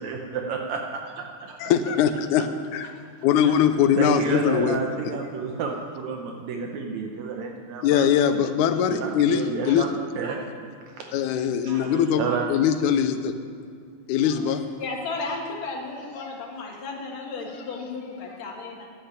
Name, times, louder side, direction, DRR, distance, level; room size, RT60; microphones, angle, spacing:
voice 1, 0.0-1.6 2.8-3.0 3.5-3.6 4.0-8.1 8.3-8.5 8.9-11.1 11.6-12.5, right 5 dB, 70° right, 2 dB, 2.1 m, -31 dB
voice 2, 1.6-2.5 2.7-2.9 3.2-4.8 7.8-9.9 11.1-13.3 14.1-14.6, left 8 dB, 85° left, 9 dB, 2.1 m, -22 dB
voice 3, 14.2-18.9, left 3 dB, 65° left, 0 dB, 2.8 m, -34 dB
10.0 x 7.9 x 8.7 m, 2.3 s
omnidirectional pair, 3.5 m